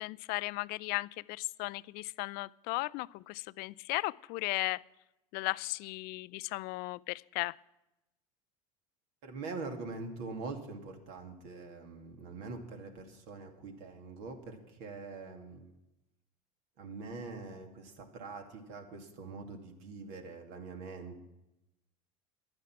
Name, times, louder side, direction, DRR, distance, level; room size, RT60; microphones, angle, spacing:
voice 1, 0.0-4.8 5.3-7.5, left 23 dB, 50° left, 20 dB, 0.4 m, -36 dB
voice 2, 9.2-15.7 16.8-21.2, right 3 dB, 60° right, 4 dB, 2.5 m, -44 dB
15.0 x 11.0 x 6.0 m, 0.95 s
hypercardioid pair, 80°, 20 cm